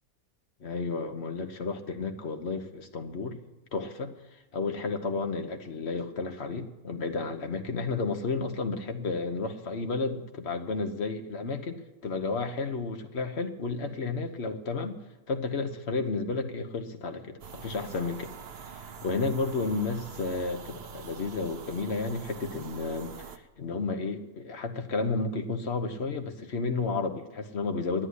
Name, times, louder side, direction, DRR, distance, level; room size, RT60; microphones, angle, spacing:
voice 1, 0.6-3.4 3.7-15.0 15.3-18.3 18.6-28.1, left 3 dB, 50° left, 6 dB, 1.3 m, -32 dB
sound 1, 17.4-23.4, right 6 dB, 50° right, 0.9 m, -44 dB
10.0 x 9.9 x 9.7 m, 1.1 s
omnidirectional pair, 1.5 m